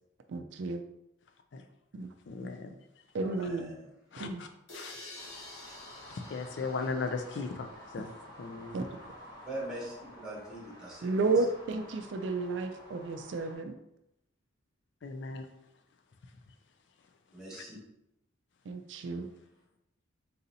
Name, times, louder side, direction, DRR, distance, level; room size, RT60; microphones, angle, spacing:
voice 1, 0.3-0.8 1.9-2.1 2.4-2.5 3.1-3.7 4.2-4.4 8.7-8.9 11.0-13.7 18.7-19.3, right 3 dB, 60° right, 6 dB, 0.3 m, -32 dB
voice 2, 2.3-2.7 4.1-4.5 4.7-4.9 6.1-8.1 8.4-8.8 15.0-15.5 17.5-17.6, left 4 dB, 60° left, 7 dB, 0.4 m, -37 dB
voice 3, 3.2-3.8 9.4-11.2 17.3-17.8, right 1 dB, 5° right, -5 dB, 1.2 m, -42 dB
sound 1, 4.7-8.4, left 2 dB, 80° left, 1.0 m, -50 dB
sound 2, 5.2-13.6, equal, 20° left, 0.8 m, -51 dB
4.1 x 3.9 x 2.7 m, 0.85 s
head